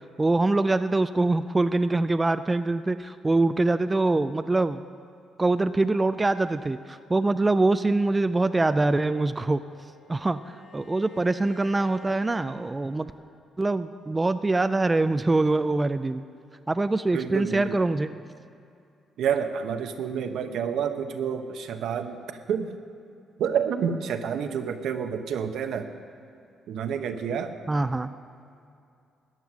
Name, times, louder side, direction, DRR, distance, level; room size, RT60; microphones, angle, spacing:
voice 1, 0.2-4.8 5.4-9.6 10.1-13.1 13.6-16.2 16.7-18.1 27.7-28.1, right 2 dB, 20° right, 11 dB, 0.3 m, -24 dB
Bowed string instrument, 9.0-13.3, left 3 dB, 50° left, 3.6 m, -52 dB
voice 2, 17.1-17.8 19.2-22.7 23.4-25.9 26.7-27.6, right 7 dB, 75° right, 7 dB, 0.8 m, -29 dB
14.0 x 9.7 x 6.2 m, 2.5 s
cardioid pair, 90°, 0 cm